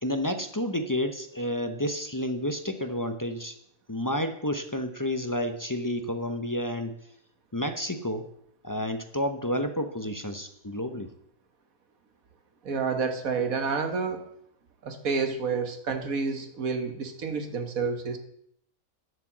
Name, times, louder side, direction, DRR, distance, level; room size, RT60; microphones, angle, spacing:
voice 1, 0.0-3.5 3.9-6.9 7.5-8.3 8.6-11.1, left 1 dB, 20° left, 7 dB, 0.7 m, -30 dB
voice 2, 12.6-14.3 14.8-18.2, right 5 dB, 65° right, 7 dB, 1.7 m, -29 dB
10.0 x 7.9 x 7.3 m, 0.71 s
omnidirectional pair, 1.6 m